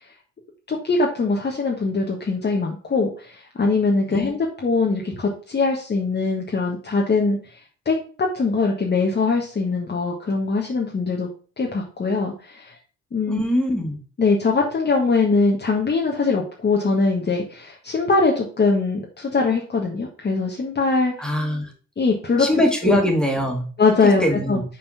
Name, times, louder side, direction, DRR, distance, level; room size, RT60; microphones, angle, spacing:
voice 1, 0.7-7.6 7.8-11.3 11.6-12.8 13.1-13.4 14.2-21.1 22.0-22.5 22.9-23.0 23.8-24.6, left 3 dB, 35° left, -1 dB, 1.4 m, -22 dB
voice 2, 13.3-14.0 21.2-21.7 22.4-23.6 24.0-24.6, equal, 5° left, 2 dB, 2.2 m, -22 dB
5.7 x 4.2 x 5.6 m, 0.40 s
cardioid pair, 90°, 30 cm